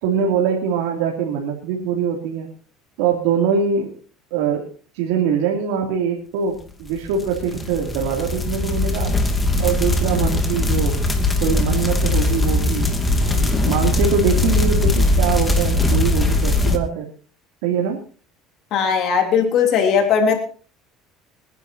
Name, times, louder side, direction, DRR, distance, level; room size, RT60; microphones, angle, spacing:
voice 1, 0.0-2.5 3.0-4.0 4.3-9.1 9.6-11.0 11.4-17.1 17.6-18.0, right 7 dB, 85° right, 0 dB, 3.0 m, -23 dB
sound 1, 7.0-16.8, left 2 dB, 15° left, 2.5 m, -20 dB
voice 2, 18.7-20.4, left 6 dB, 60° left, 3 dB, 3.3 m, -18 dB
27.5 x 11.0 x 2.9 m, 0.39 s
supercardioid pair, 110°, 0 cm